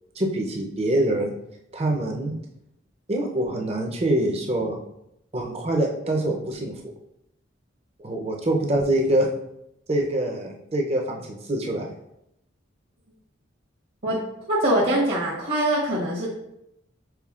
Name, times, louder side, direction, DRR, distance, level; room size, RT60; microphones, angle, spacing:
voice 1, 0.2-1.3 1.7-2.4 3.1-4.8 5.3-6.8 8.0-9.3 9.9-11.9, right 1 dB, 30° right, 1 dB, 0.6 m, -25 dB
voice 2, 14.5-16.3, right 1 dB, 50° right, -6 dB, 1.1 m, -23 dB
5.8 x 3.7 x 2.4 m, 0.80 s
head